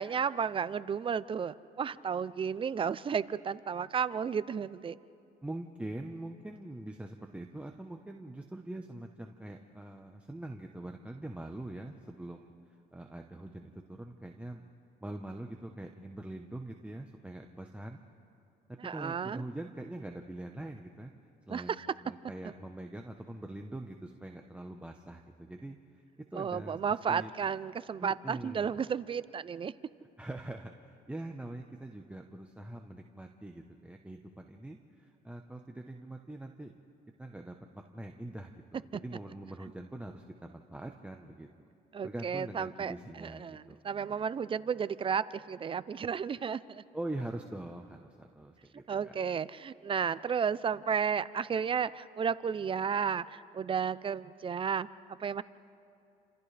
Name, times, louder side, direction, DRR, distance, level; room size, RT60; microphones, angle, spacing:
voice 1, 0.0-5.0 18.8-19.4 21.5-21.9 26.3-29.7 41.9-46.8 48.9-55.4, right 7 dB, 30° right, 16 dB, 0.5 m, -33 dB
voice 2, 5.4-12.5 12.9-14.6 15.0-18.0 18.9-21.1 21.5-21.7 22.0-25.8 26.2-26.8 27.1-27.3 28.0-28.8 30.2-36.8 37.2-41.5 42.0-43.8 46.9-49.2, right 1 dB, 5° right, 2 dB, 0.9 m, -43 dB
30.0 x 26.5 x 3.4 m, 2.6 s
cardioid pair, 110°, 17 cm